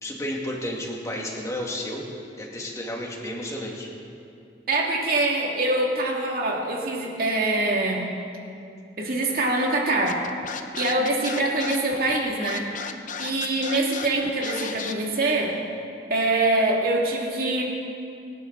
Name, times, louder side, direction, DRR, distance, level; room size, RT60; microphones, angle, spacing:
voice 1, 0.0-2.1 2.4-3.9, left 1 dB, 20° left, -1 dB, 2.1 m, -32 dB
voice 2, 4.7-8.0 9.0-10.2 10.8-12.6 13.2-15.5 16.1-17.6, right 2 dB, 55° right, -1 dB, 2.4 m, -24 dB
Scratching (performance technique), 10.1-14.9, left 6 dB, 45° left, 0.8 m, -35 dB
24.5 x 11.0 x 4.0 m, 2.6 s
head